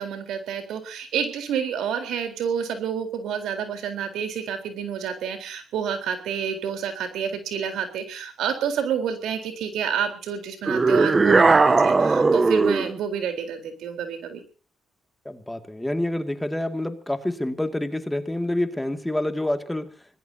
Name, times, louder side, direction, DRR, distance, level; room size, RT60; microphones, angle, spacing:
voice 1, 0.0-14.4, right 7 dB, 80° right, 7 dB, 3.9 m, -29 dB
sound 1, 10.7-13.0, right 3 dB, 30° right, 0.8 m, -18 dB
voice 2, 15.3-19.9, left 1 dB, 5° left, 7 dB, 2.2 m, -27 dB
25.5 x 19.5 x 2.8 m, 0.37 s
cardioid pair, 90°, 0 cm